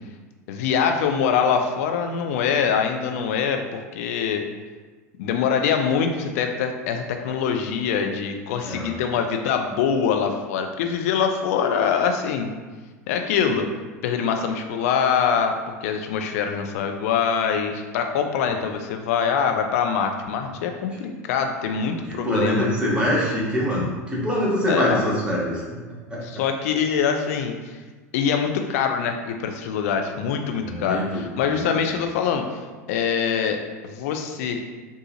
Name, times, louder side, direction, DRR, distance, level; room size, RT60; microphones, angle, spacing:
voice 1, 0.5-4.4 5.2-12.5 13.1-13.7 14.0-22.7 24.7-25.0 26.2-27.8 28.1-32.5 32.9-34.6, left 7 dB, 65° left, 4 dB, 0.4 m, -24 dB
voice 2, 8.6-8.9 22.2-25.6 26.1-26.2 30.6-31.3 31.5-31.6, equal, 15° right, -6 dB, 1.3 m, -24 dB
4.0 x 2.4 x 2.8 m, 1.3 s
hypercardioid pair, 80°, 9 cm